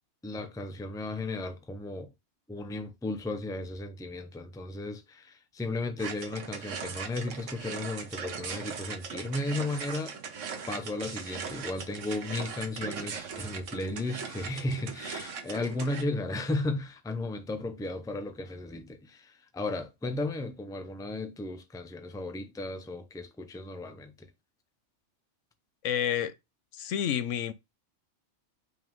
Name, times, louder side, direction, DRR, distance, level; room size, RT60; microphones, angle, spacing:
voice 1, 0.2-2.1 2.5-10.1 10.7-24.3, left 2 dB, 5° left, 0.5 m, -35 dB
sound 1, 6.0-16.0, right 6 dB, 80° right, 1.3 m, -39 dB
voice 2, 25.8-26.3 26.7-27.5, left 9 dB, 80° left, 1.0 m, -29 dB
5.5 x 3.7 x 5.2 m
omnidirectional pair, 1.3 m